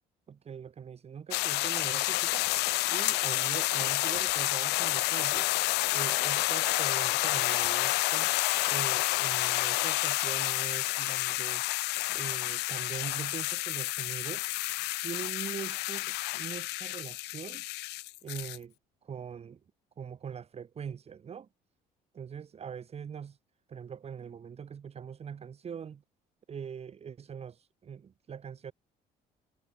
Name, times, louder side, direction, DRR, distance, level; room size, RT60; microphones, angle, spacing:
voice 1, 0.3-2.5 2.8-5.5 5.9-8.3 8.7-11.6 12.1-14.5 15.0-17.6 18.2-18.7 19.0-19.6 20.0-21.5 22.1-23.4 23.7-26.0 26.5-28.7, right 7 dB, 35° right, 1.6 m, -42 dB
sound 1, 1.3-18.6, left 21 dB, 85° left, 0.7 m, -29 dB
cardioid pair, 110°, 17 cm